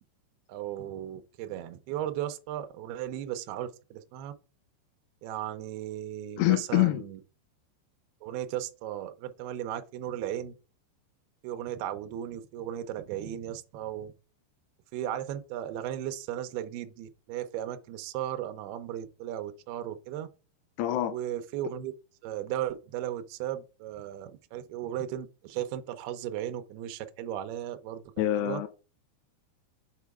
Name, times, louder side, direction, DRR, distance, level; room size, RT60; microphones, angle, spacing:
voice 1, 0.5-4.3 5.2-7.2 8.2-10.6 11.4-14.1 14.9-20.3 21.1-21.9 22.2-28.0 28.4-28.6, right 11 dB, 90° right, 2.2 m, -36 dB
voice 2, 6.4-7.0 20.8-21.1 28.2-28.7, left 15 dB, 80° left, 2.5 m, -25 dB
7.2 x 4.7 x 3.5 m
omnidirectional pair, 5.5 m